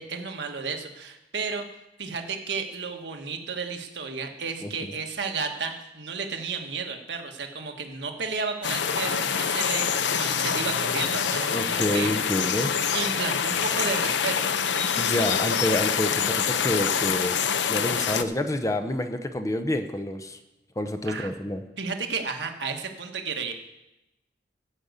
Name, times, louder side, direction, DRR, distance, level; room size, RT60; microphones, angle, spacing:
voice 1, 0.0-1.7 2.0-12.6 12.9-14.5 21.1-21.3 21.8-23.5, right 5 dB, 70° right, 4 dB, 1.4 m, -33 dB
sound 1, 8.6-18.2, left 7 dB, 80° left, 0.6 m, -26 dB
voice 2, 11.5-12.8 14.9-17.4 17.7-20.4 20.8-21.6, left 1 dB, 20° left, 7 dB, 0.7 m, -28 dB
14.0 x 5.3 x 8.1 m, 0.94 s
head